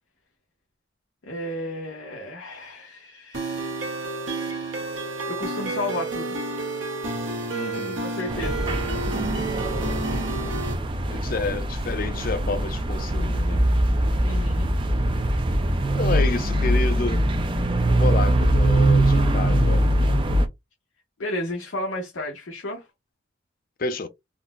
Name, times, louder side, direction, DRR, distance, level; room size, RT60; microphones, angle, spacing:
voice 1, 1.2-3.9 5.3-6.4 8.0-8.7 14.2-14.7 21.2-22.9, left 1 dB, 75° left, 0.9 m, -32 dB
sound 1, 3.3-10.7, right 2 dB, 75° right, 0.9 m, -30 dB
voice 2, 7.5-8.1 11.1-13.6 16.0-17.2 17.9-19.9 23.8-24.1, left 3 dB, 45° left, 0.5 m, -29 dB
sound 2, 8.3-20.5, right 1 dB, 25° right, 0.4 m, -22 dB
3.8 x 2.0 x 2.3 m
head